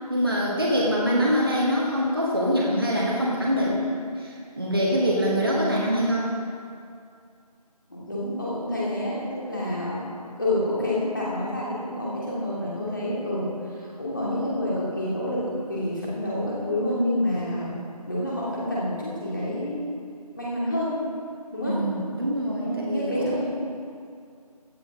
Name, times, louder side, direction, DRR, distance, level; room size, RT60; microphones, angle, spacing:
voice 1, 0.1-6.3 21.7-23.3, equal, 35° right, -5 dB, 1.5 m, -24 dB
voice 2, 7.9-10.0 10.4-17.7 18.1-19.8 20.4-21.0 21.5-21.8 22.6-23.4, left 1 dB, 30° left, -7 dB, 2.6 m, -28 dB
16.0 x 8.8 x 3.6 m, 2.3 s
figure-of-eight pair, 180°, 20 cm